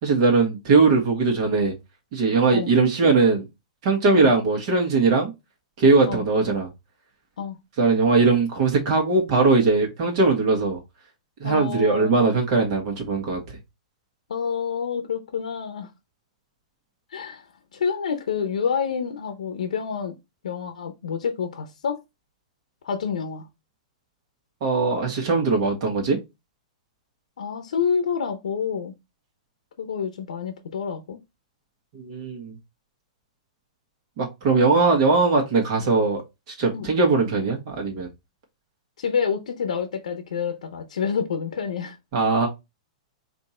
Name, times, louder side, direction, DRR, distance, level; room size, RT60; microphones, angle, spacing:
voice 1, 0.0-1.7 2.1-3.4 3.8-5.3 5.8-6.7 7.8-10.8 11.4-13.4 24.6-26.2 31.9-32.6 34.2-38.1 42.1-42.5, right 3 dB, 50° right, 1.5 m, -20 dB
voice 2, 11.4-12.2 14.3-15.9 17.1-17.4 17.7-20.1 20.4-22.0 22.8-23.5 27.4-28.9 29.8-31.2 36.7-36.9 39.0-42.0, left 6 dB, 85° left, 0.7 m, -28 dB
4.3 x 2.7 x 4.3 m
hypercardioid pair, 140°, 4 cm